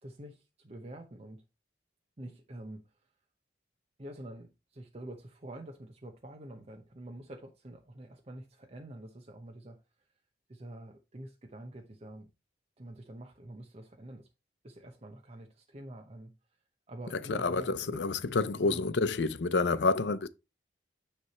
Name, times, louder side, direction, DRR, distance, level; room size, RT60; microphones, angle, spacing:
voice 1, 0.0-1.4 2.2-2.8 4.0-9.8 10.5-12.3 12.8-14.3 14.6-16.3 16.9-18.0 18.6-18.8, right 1 dB, 35° right, 0.9 m, -46 dB
voice 2, 17.3-20.3, left 3 dB, 85° left, 0.6 m, -28 dB
9.5 x 3.4 x 4.2 m
head